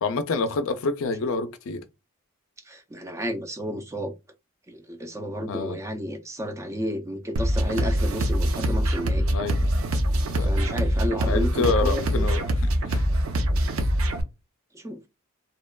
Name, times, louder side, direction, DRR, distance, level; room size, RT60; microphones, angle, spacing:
voice 1, 0.0-1.8 5.5-5.8 9.2-10.0 10.3-10.8 11.3-12.4 12.9-13.0, left 3 dB, 65° left, 0.4 m, -27 dB
voice 2, 2.7-4.1 4.7-9.2 10.4-12.3 14.7-15.0, equal, 15° right, 0.3 m, -32 dB
sound 1, 7.4-14.2, equal, 70° right, 0.5 m, -24 dB
2.8 x 2.2 x 2.2 m
head